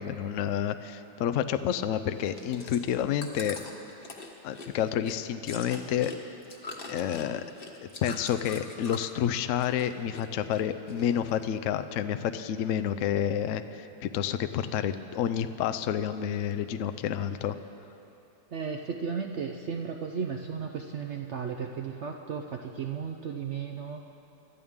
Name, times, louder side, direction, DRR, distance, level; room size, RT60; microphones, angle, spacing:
voice 1, 0.0-3.6 4.4-6.1 6.9-7.4 7.8-17.6, left 9 dB, 80° left, 9 dB, 0.7 m, -29 dB
Chewing mastication, 2.1-9.2 9.5-10.3 10.5-11.4 11.9-12.0, left 3 dB, 35° left, 1.2 m, -43 dB
voice 2, 18.5-24.0, right 6 dB, 70° right, 3 dB, 0.6 m, -34 dB
24.0 x 12.5 x 3.6 m, 2.9 s
omnidirectional pair, 1.9 m